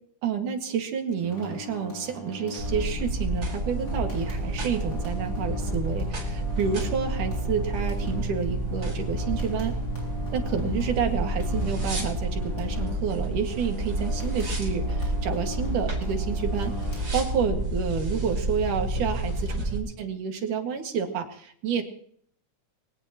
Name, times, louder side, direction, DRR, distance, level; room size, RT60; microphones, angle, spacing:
voice 1, 0.2-9.8 10.3-16.8 17.1-21.8, right 7 dB, 85° right, 4 dB, 3.6 m, -29 dB
sound 1, 1.2-17.6, left 2 dB, 25° left, 5.9 m, -40 dB
sound 2, 2.6-19.8, right 1 dB, 35° right, 4.8 m, -29 dB
22.5 x 18.5 x 3.0 m, 0.63 s
omnidirectional pair, 3.5 m